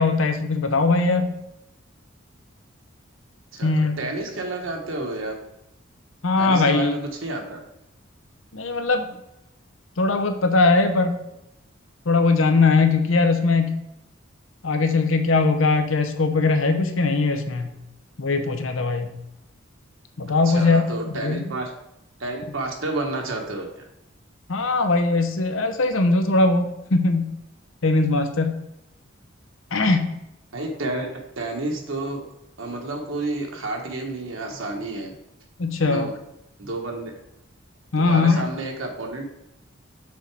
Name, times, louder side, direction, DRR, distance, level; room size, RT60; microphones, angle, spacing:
voice 1, 0.0-1.3 3.6-4.0 6.2-7.0 8.5-9.2 10.0-11.2 12.1-13.8 14.6-17.8 18.2-19.1 20.2-21.5 24.5-27.3 27.8-28.6 29.7-30.1 35.6-36.1 37.9-38.4, left 3 dB, 75° left, 7 dB, 0.7 m, -20 dB
voice 2, 4.0-5.3 6.4-7.6 20.4-21.7 22.2-23.8 30.5-31.1 31.4-32.2 32.6-35.2 35.8-36.1 36.6-37.1 38.0-39.2, right 2 dB, 80° right, 1 dB, 1.2 m, -30 dB
6.2 x 4.1 x 4.7 m, 0.85 s
head